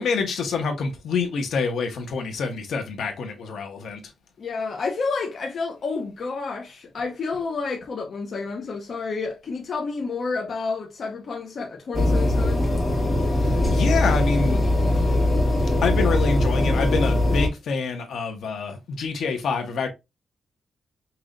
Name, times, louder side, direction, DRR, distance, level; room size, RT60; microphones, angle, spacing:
voice 1, 0.0-4.0 13.2-14.6 14.9-15.2 15.8-19.9, left 4 dB, 75° left, 1.2 m, -26 dB
voice 2, 4.4-12.7, left 4 dB, 50° left, 0.9 m, -30 dB
sound 1, 11.9-17.5, left 1 dB, 30° left, 1.8 m, -21 dB
5.6 x 3.1 x 2.6 m
wide cardioid pair, 140°, 0 cm